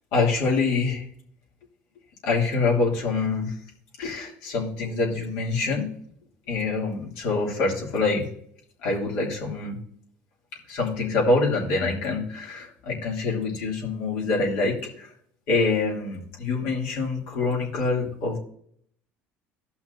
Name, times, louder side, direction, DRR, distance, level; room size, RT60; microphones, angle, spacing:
voice 1, 0.1-1.0 2.2-3.5 4.0-5.9 6.5-8.2 8.8-9.8 10.7-15.1 15.5-18.4, left 3 dB, 85° left, -2 dB, 2.8 m, -25 dB
14.5 x 5.8 x 2.7 m, 0.66 s
supercardioid pair, 105°, 5 cm